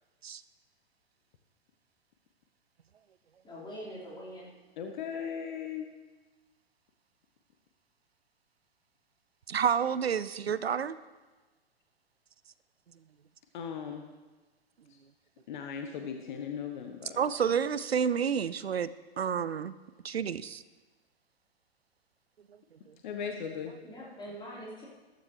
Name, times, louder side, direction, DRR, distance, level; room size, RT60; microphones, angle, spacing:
voice 1, 3.4-4.5 23.8-24.8, equal, 15° left, -7 dB, 4.6 m, -43 dB
voice 2, 4.8-5.9 13.5-14.0 15.5-17.2 23.0-23.7, left 7 dB, 50° left, 5 dB, 1.2 m, -37 dB
voice 3, 9.5-11.0 17.2-18.9 19.2-19.7 20.0-20.6, right 7 dB, 75° right, 16 dB, 0.5 m, -29 dB
14.5 x 13.0 x 3.2 m, 1.2 s
figure-of-eight pair, 105°, 31 cm